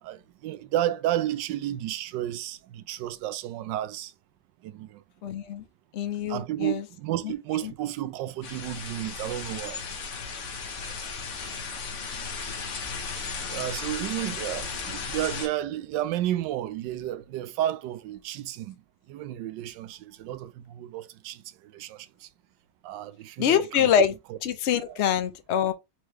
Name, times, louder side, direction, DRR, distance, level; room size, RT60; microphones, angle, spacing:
voice 1, 0.0-4.1 4.6-5.0 6.3-9.8 13.5-18.7 19.1-22.3 22.8-23.9 24.3-24.4 24.9-25.0, right 13 dB, 85° right, 1.2 m, -32 dB
voice 2, 5.2-5.6 5.9-6.8 7.2-7.3 7.6-7.7 23.4-24.2 24.4-25.7, left 8 dB, 75° left, 0.6 m, -25 dB
sound 1, 8.4-15.5, left 5 dB, 50° left, 1.1 m, -35 dB
4.5 x 3.3 x 3.0 m
omnidirectional pair, 1.9 m